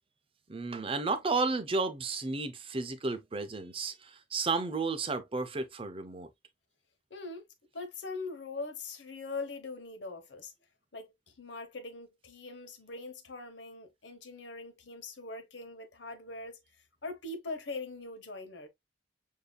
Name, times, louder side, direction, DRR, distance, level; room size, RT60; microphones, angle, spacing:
voice 1, 0.5-6.3, right 3 dB, 30° right, 0.6 m, -32 dB
voice 2, 7.1-7.5 7.7-10.5 10.9-16.6 17.0-18.7, left 3 dB, 75° left, 0.9 m, -42 dB
6.6 x 2.7 x 2.2 m
head